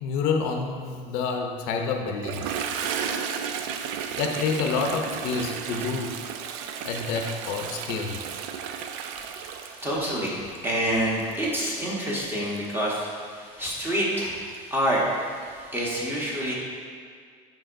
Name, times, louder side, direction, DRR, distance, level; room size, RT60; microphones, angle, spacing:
voice 1, 0.0-2.6 4.2-6.2 6.8-8.2, left 5 dB, 70° left, 3 dB, 0.6 m, -28 dB
Toilet flush, 2.1-12.7, right 7 dB, 80° right, 0.4 m, -34 dB
voice 2, 9.1-16.5, equal, 15° right, -5 dB, 1.1 m, -28 dB
7.5 x 5.2 x 2.6 m, 2.1 s
cardioid pair, 155°, 17 cm